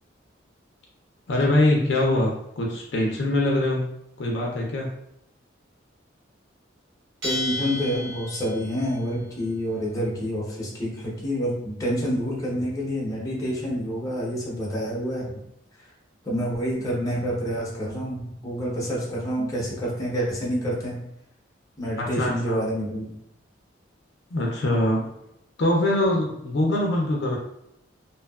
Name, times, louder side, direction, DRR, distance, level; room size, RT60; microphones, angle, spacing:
voice 1, 1.3-3.9 4.2-4.9 16.2-16.4 22.0-22.6 24.3-25.1 25.6-27.4, left 1 dB, 60° left, -2 dB, 0.4 m, -23 dB
voice 2, 7.2-15.3 16.2-21.0 21.8-23.1, equal, 20° left, -6 dB, 0.7 m, -28 dB
Bell, 7.2-8.8, left 2 dB, 60° right, 0.9 m, -32 dB
2.7 x 2.2 x 2.3 m, 0.79 s
head